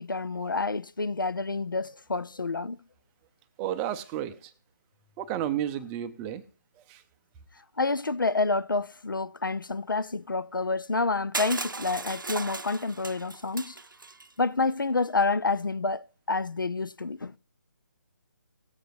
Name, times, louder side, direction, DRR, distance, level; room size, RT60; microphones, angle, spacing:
voice 1, 0.0-2.8 7.8-13.8 14.4-17.3, left 3 dB, 85° left, 0.6 m, -28 dB
voice 2, 3.6-4.5 5.2-6.4 6.9-7.0, right 11 dB, 15° right, 0.5 m, -32 dB
Crushing, 11.3-14.3, right 3 dB, 80° right, 0.7 m, -36 dB
18.5 x 7.7 x 2.5 m
figure-of-eight pair, 150°, 11 cm